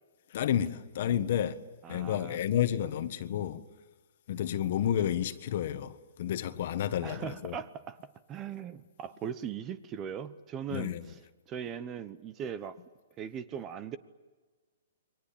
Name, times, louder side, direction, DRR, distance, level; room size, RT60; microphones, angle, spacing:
voice 1, 0.3-1.6 1.9-3.6 4.3-7.6 10.7-11.0, left 10 dB, 50° left, 1.5 m, -30 dB
voice 2, 1.8-2.4 7.0-8.0 8.3-11.2 11.5-12.8 13.2-14.0, right 8 dB, 20° right, 1.0 m, -39 dB
28.5 x 23.5 x 8.9 m
hypercardioid pair, 160°, 0 cm